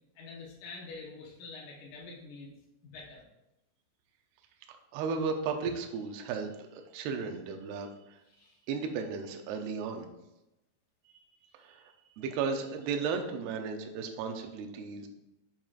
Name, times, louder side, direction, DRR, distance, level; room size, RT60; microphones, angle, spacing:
voice 1, 0.2-2.5 2.8-3.3 8.3-8.6, left 3 dB, 85° left, -4 dB, 1.7 m, -46 dB
voice 2, 4.7-8.2 8.7-10.1 11.1-11.2 11.5-15.1, right 5 dB, 80° right, 4 dB, 2.4 m, -35 dB
7.4 x 7.1 x 2.5 m, 0.93 s
omnidirectional pair, 5.3 m